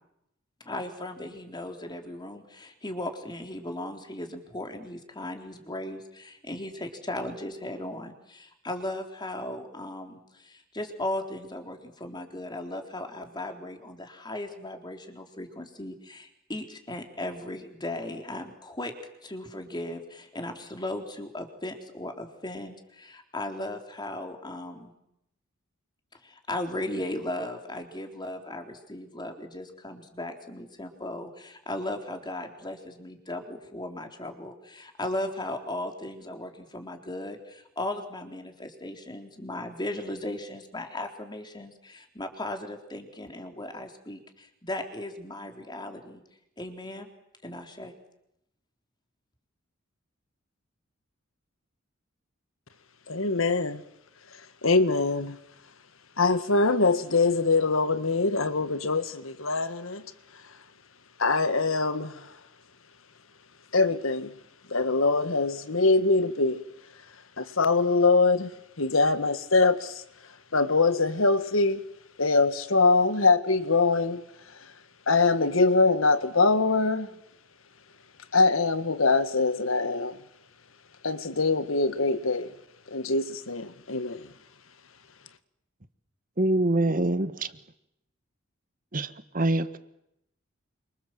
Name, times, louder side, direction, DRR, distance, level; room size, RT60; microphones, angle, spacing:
voice 1, 0.6-18.9 19.2-24.9 26.2-46.2 46.6-47.1 47.4-47.9, left 1 dB, 20° left, 3.9 m, -37 dB
voice 2, 53.1-53.8 54.6-55.4 56.2-60.0 61.2-62.3 63.7-64.3 64.7-66.6 67.4-68.5 68.8-70.0 70.5-71.8 72.2-74.2 75.1-77.1 78.3-80.2 81.0-82.5 82.9-84.3, left 3 dB, 80° left, 1.7 m, -23 dB
voice 3, 86.4-87.5 88.9-89.8, right 2 dB, 45° right, 1.6 m, -25 dB
29.0 x 26.0 x 7.7 m
head